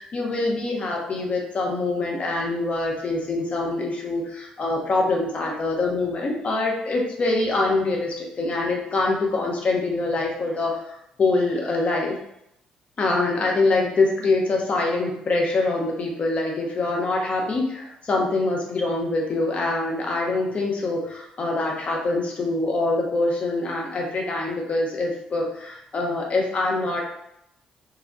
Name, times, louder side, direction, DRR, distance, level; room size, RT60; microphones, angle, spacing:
voice 1, 0.0-12.2 13.0-27.0, left 2 dB, 45° left, -1 dB, 0.9 m, -24 dB
3.4 x 2.4 x 2.3 m, 0.79 s
hypercardioid pair, 55°, 3 cm